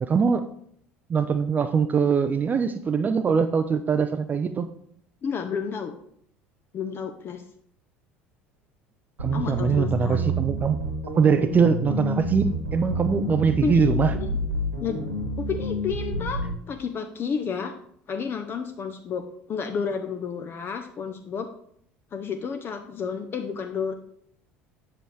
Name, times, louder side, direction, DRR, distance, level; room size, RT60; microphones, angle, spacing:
voice 1, 0.0-0.4 1.1-4.7 9.2-10.8 11.1-14.1, right 6 dB, 25° right, 9 dB, 0.4 m, -22 dB
voice 2, 5.2-5.9 6.7-7.4 9.3-10.3 13.6-14.4 14.8-15.0 15.4-17.7 18.1-21.5 22.1-23.9, left 6 dB, 35° left, 6 dB, 0.6 m, -31 dB
sound 1, 9.2-16.6, equal, 85° right, 1.6 m, -29 dB
7.7 x 7.5 x 3.3 m, 0.66 s
figure-of-eight pair, 65°, 7 cm